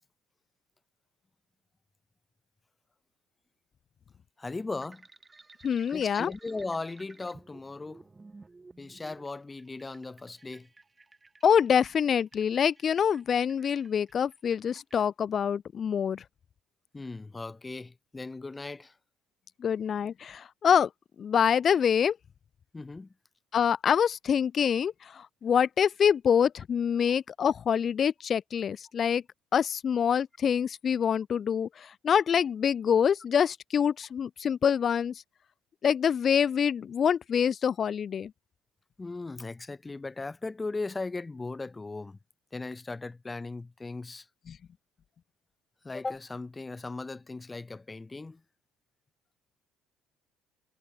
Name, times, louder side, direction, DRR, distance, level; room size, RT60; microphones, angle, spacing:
voice 1, 4.4-5.1 5.9-8.1 8.8-10.7 16.9-19.0 22.7-23.1 27.0-27.1 39.0-42.2 42.5-44.3 45.8-48.4, left 3 dB, 15° left, 6.0 m, -38 dB
sound 1, 4.8-15.0, right 3 dB, 20° right, 7.8 m, -56 dB
voice 2, 5.6-6.3 11.4-16.2 19.6-20.9 21.2-22.2 23.5-29.2 29.5-35.1 35.8-38.3 44.5-44.6, left 7 dB, 40° left, 0.6 m, -26 dB
cardioid pair, 105°, 0 cm